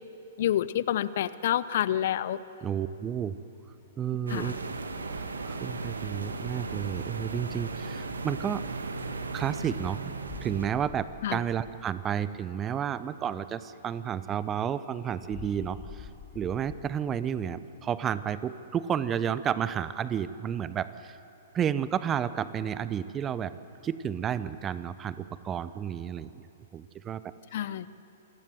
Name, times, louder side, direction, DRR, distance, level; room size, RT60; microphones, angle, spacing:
voice 1, 0.4-2.4 4.3-4.5 11.2-11.4 27.5-27.9, left 11 dB, 55° left, 17 dB, 0.7 m, -28 dB
voice 2, 2.6-3.4 4.0-4.5 5.5-8.6 9.3-16.1 16.3-21.2 21.5-23.5 23.8-26.4 26.7-27.3, right 8 dB, 20° right, 15 dB, 0.7 m, -31 dB
sound 1, 3.8-17.2, left 8 dB, 25° left, 1.7 m, -52 dB
sound 2, 4.3-10.7, right 3 dB, 75° right, 1.8 m, -36 dB
27.5 x 18.5 x 7.8 m, 2.8 s
figure-of-eight pair, 110°, 0 cm